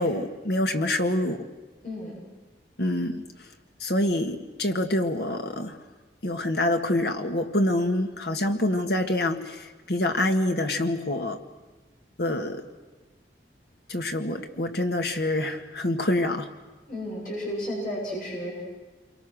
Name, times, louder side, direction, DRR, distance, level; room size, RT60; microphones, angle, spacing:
voice 1, 0.0-1.5 2.8-3.2 3.8-5.8 6.2-11.4 12.2-12.6 13.9-16.5, left 1 dB, 65° left, 5 dB, 1.9 m, -26 dB
voice 2, 16.9-18.6, equal, 45° left, -4 dB, 7.9 m, -32 dB
28.5 x 24.0 x 6.4 m, 1.2 s
head